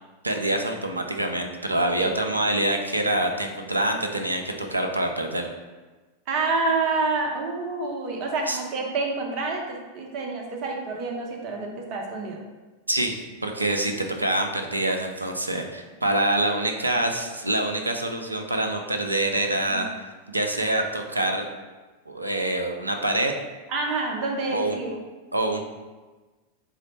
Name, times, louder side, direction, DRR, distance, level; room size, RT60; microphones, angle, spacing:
voice 1, 0.2-5.5 8.5-8.6 12.9-19.9 20.3-21.4 22.1-23.3 24.5-24.8 25.3-25.6, right 1 dB, 85° right, 4 dB, 0.4 m, -25 dB
voice 2, 6.3-12.4 19.7-19.9 23.7-24.9, right 3 dB, 40° right, 1 dB, 0.7 m, -28 dB
4.1 x 2.1 x 3.9 m, 1.3 s
figure-of-eight pair, 90°, 0 cm